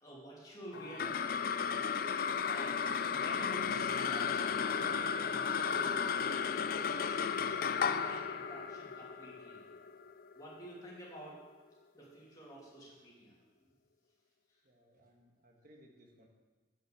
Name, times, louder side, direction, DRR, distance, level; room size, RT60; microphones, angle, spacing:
voice 1, 0.0-1.4 2.4-2.8 3.1-6.5 6.8-9.6 10.3-11.4 11.9-13.3, right 1 dB, 20° left, -6 dB, 2.8 m, -50 dB
sound 1, 0.7-11.3, left 6 dB, 50° left, 0.4 m, -34 dB
voice 2, 14.6-16.3, equal, 50° right, 1 dB, 1.6 m, -62 dB
7.9 x 6.6 x 6.9 m, 1.3 s
head